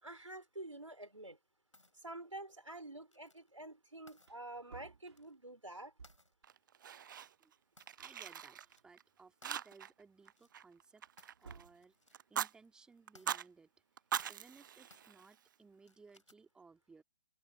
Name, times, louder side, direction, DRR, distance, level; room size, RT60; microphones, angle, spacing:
voice 1, 0.0-1.4 2.0-5.9, right 2 dB, 85° right, 4.3 m, -48 dB
sound 1, 1.7-2.0 3.1-3.5 4.1-4.3 5.1-5.3 6.0-6.3 7.0-7.1 7.8-8.2 8.5-8.8 9.4-9.7 10.2-10.5 11.2-11.4 11.8-12.2 12.6-12.7 13.1-13.3 14.2-14.5 14.9-15.1 15.8-16.5, left 2 dB, 80° left, 3.8 m, -65 dB
Wood, 3.8-3.9 4.2-6.5 7.6-7.7 8.0-9.2 9.7-9.8 11.0-11.9 13.9-14.9, right 5 dB, 60° right, 2.9 m, -59 dB
Fire, 6.4-7.5 7.8-9.0 9.4-10.0 10.3-11.7 12.1-12.5 13.1-13.5 14.0-15.5, right 9 dB, 40° right, 0.8 m, -42 dB
voice 2, 8.0-11.0 11.4-12.0 12.3-13.7 14.3-17.0, right 4 dB, 5° right, 2.0 m, -61 dB
figure-of-eight pair, 130°, 16 cm